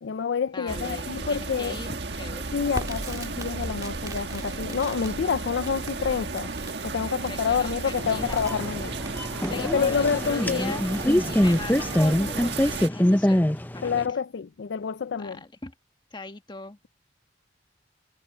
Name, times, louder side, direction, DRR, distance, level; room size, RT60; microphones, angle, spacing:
voice 1, 0.0-1.8 2.5-6.5 6.8-9.0 9.5-10.8 13.8-15.4, left 6 dB, 85° left, 0.4 m, -28 dB
voice 2, 0.5-2.4 7.3-8.4 9.4-10.9 11.3-13.4 13.7-14.0 15.2-15.7 16.1-16.8, left 3 dB, 25° left, 1.4 m, -39 dB
sound 1, 0.7-12.9, right 3 dB, 70° right, 1.6 m, -34 dB
Crackle, 2.7-12.1, right 2 dB, 20° right, 1.8 m, -43 dB
sound 2, 8.0-14.1, left 1 dB, 10° left, 0.7 m, -24 dB
head